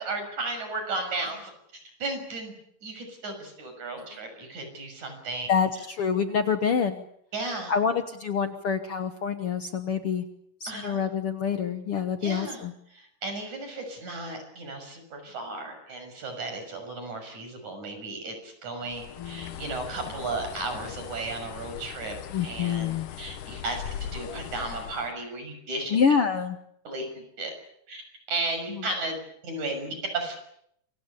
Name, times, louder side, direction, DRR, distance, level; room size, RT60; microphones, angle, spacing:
voice 1, 0.0-1.5 2.0-2.5 2.8-5.5 7.3-7.7 10.7-11.1 12.2-12.6 12.9-26.0 26.8-27.5 27.9-29.2 29.4-30.4, right 2 dB, 60° right, 6 dB, 7.9 m, -34 dB
voice 2, 5.5-7.0 7.7-10.2 10.6-12.7 19.2-19.6 22.3-23.1 25.9-26.6 28.7-28.8, left 6 dB, 55° left, 7 dB, 1.8 m, -26 dB
Bird, 18.9-25.1, left 9 dB, 75° left, 2.7 m, -40 dB
27.5 x 24.0 x 7.1 m, 0.72 s
omnidirectional pair, 3.7 m